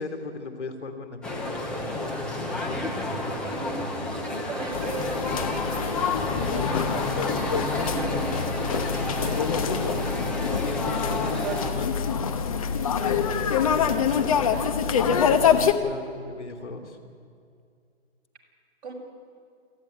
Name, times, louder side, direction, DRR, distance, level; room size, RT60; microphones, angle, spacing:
voice 1, 0.0-3.3 10.4-12.4 13.4-14.5 15.0-17.0, left 3 dB, 85° left, 6 dB, 3.1 m, -38 dB
sound 1, 1.2-11.7, left 1 dB, 5° left, 0.7 m, -31 dB
voice 2, 3.4-11.7 13.0-13.6 14.3-14.9 18.8-18.9, right 2 dB, 40° right, -2 dB, 6.4 m, -38 dB
sound 2, 4.7-15.7, left 7 dB, 30° left, 1.1 m, -25 dB
28.5 x 12.0 x 9.9 m, 2.2 s
hypercardioid pair, 155°, 34 cm